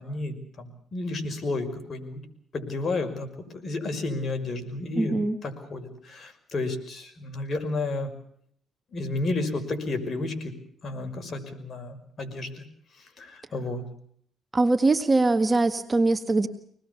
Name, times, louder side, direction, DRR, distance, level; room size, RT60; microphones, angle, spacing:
voice 1, 0.0-2.2 2.5-3.3 3.5-5.2 5.4-8.1 8.9-10.5 10.8-12.6 13.2-13.8, left 2 dB, 45° left, 6 dB, 5.7 m, -31 dB
voice 2, 5.0-5.4 14.5-16.5, right 2 dB, 25° right, 8 dB, 1.8 m, -22 dB
25.5 x 20.0 x 7.1 m, 0.66 s
cardioid pair, 90°, 0 cm